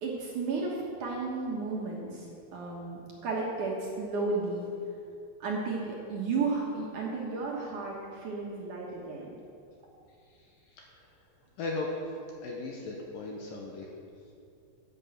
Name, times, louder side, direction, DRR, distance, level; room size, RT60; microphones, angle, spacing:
voice 1, 0.0-2.3 2.5-4.7 5.4-9.3, right 3 dB, 60° right, -3 dB, 2.3 m, -33 dB
voice 2, 11.6-12.0 12.4-13.9, left 3 dB, 70° left, 0 dB, 2.4 m, -36 dB
10.0 x 9.4 x 7.8 m, 2.6 s
omnidirectional pair, 4.9 m